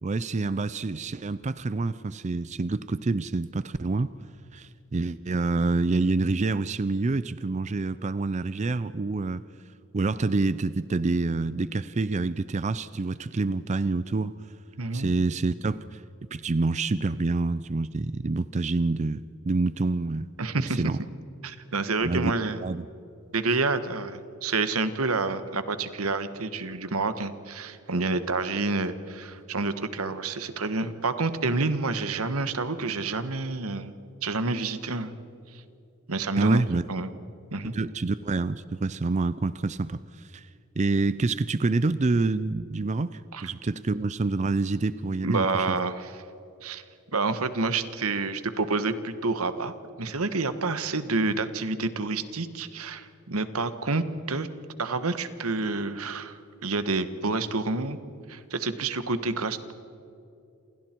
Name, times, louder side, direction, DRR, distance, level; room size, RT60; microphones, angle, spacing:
voice 1, 0.0-4.1 4.5-9.4 9.9-14.3 14.9-16.0 16.3-20.3 20.7-21.0 22.0-22.8 36.4-36.9 37.7-40.5 40.8-45.8, right 3 dB, 30° right, 15 dB, 0.5 m, -27 dB
voice 2, 14.8-15.1 20.4-20.8 21.4-22.6 23.3-33.9 34.2-35.1 35.5-35.6 36.1-37.1 37.5-37.7 43.3-43.5 45.2-46.1 46.6-46.8 47.1-54.5 54.8-58.0 58.3-59.7, right 3 dB, 85° right, 11 dB, 1.4 m, -28 dB
28.5 x 28.0 x 4.6 m, 2.8 s
head